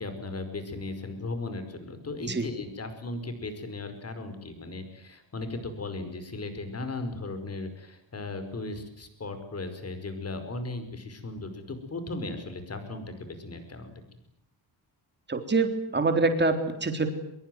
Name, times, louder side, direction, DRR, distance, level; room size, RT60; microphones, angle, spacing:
voice 1, 0.0-13.9, left 2 dB, 30° left, 9 dB, 5.2 m, -37 dB
voice 2, 15.3-17.1, right 3 dB, 25° right, 6 dB, 3.8 m, -25 dB
23.5 x 22.0 x 9.5 m, 0.78 s
cardioid pair, 140°, 45 cm